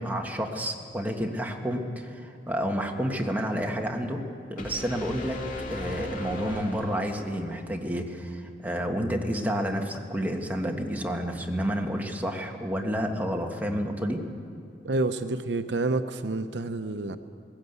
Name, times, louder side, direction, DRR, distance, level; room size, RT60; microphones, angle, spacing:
voice 1, 0.0-4.2 4.5-14.2, equal, 10° right, 2 dB, 1.6 m, -30 dB
sound 1, 4.6-7.5, left 1 dB, 50° left, 2.2 m, -37 dB
voice 2, 14.8-17.2, right 2 dB, 75° right, 10 dB, 0.7 m, -28 dB
20.0 x 16.5 x 8.2 m, 2.6 s
head